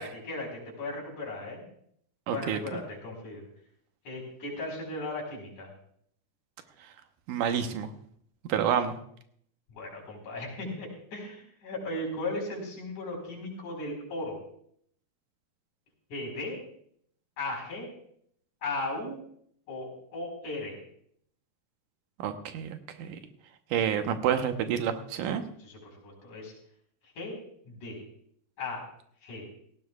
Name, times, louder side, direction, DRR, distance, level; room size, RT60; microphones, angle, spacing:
voice 1, 0.0-1.6 2.3-3.5 4.0-5.7 9.7-14.4 16.1-16.6 17.4-17.9 18.6-19.2 19.7-20.8 25.6-26.5 27.0-27.4 27.6-28.0 28.6-28.9 29.2-29.5, left 2 dB, 70° left, -2 dB, 6.0 m, -37 dB
voice 2, 2.3-2.6 6.8-6.9 7.3-7.9 8.4-9.0 22.2-23.2 23.7-25.4, right 8 dB, 85° right, 7 dB, 2.5 m, -29 dB
18.0 x 16.0 x 2.4 m, 0.65 s
omnidirectional pair, 3.6 m